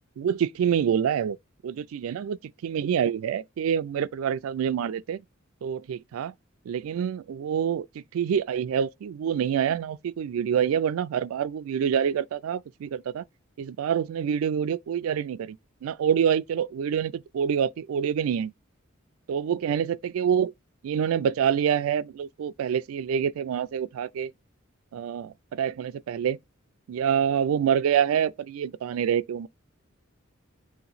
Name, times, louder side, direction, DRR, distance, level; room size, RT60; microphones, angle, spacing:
voice 1, 0.2-1.4 1.6-2.4 2.6-5.2 5.6-6.3 6.7-7.9 8.1-13.2 13.6-15.6 15.8-18.5 19.3-20.5 20.8-24.3 24.9-26.4 26.9-29.5, right 8 dB, 85° right, 0.3 m, -26 dB
4.3 x 2.9 x 3.9 m
head